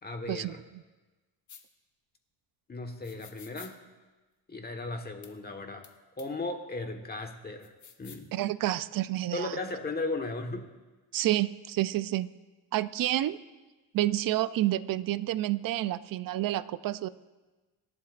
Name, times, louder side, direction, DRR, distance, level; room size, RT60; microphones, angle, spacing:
voice 1, 0.0-0.6 2.7-3.8 4.5-5.9 6.2-7.7 8.0-8.3 9.3-10.7, left 2 dB, 25° left, 5 dB, 1.3 m, -36 dB
sound 1, 1.5-1.6 3.0-3.7 5.2-5.3 5.8-5.9 6.2-6.3 7.6-8.3, left 7 dB, 45° left, 1.2 m, -50 dB
voice 2, 8.3-9.5 11.1-12.3 12.7-13.4 13.9-17.1, right 14 dB, 55° right, 15 dB, 0.5 m, -29 dB
26.0 x 11.5 x 2.5 m, 1.2 s
cardioid pair, 125°, 41 cm